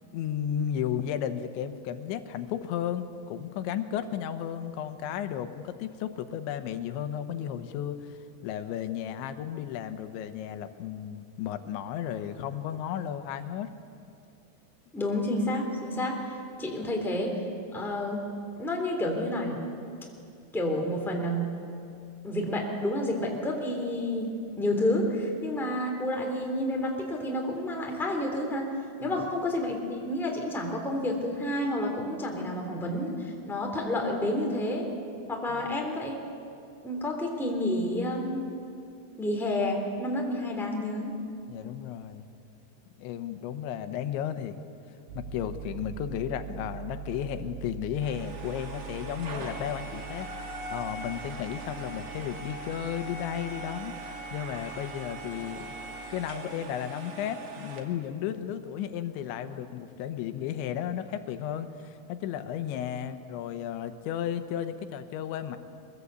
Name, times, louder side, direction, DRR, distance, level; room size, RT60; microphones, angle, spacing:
voice 1, 0.0-8.2 8.4-13.7 29.0-29.2 35.5-35.6 41.5-42.3 43.0-44.6 45.2-53.9 54.3-55.7 56.1-65.6, left 10 dB, 85° left, 9 dB, 3.4 m, -34 dB
voice 2, 14.9-17.4 17.7-18.2 18.6-19.6 20.5-21.5 22.2-24.3 24.6-28.7 29.0-34.8 35.3-36.2 36.8-38.4 39.2-41.1, left 1 dB, ahead, 0 dB, 2.5 m, -30 dB
Piano, 45.1-56.4, right 10 dB, 70° right, 3.3 m, -44 dB
sound 1, 48.0-57.8, right 2 dB, 40° right, 2.4 m, -41 dB
23.0 x 22.0 x 8.3 m, 2.5 s
omnidirectional pair, 5.2 m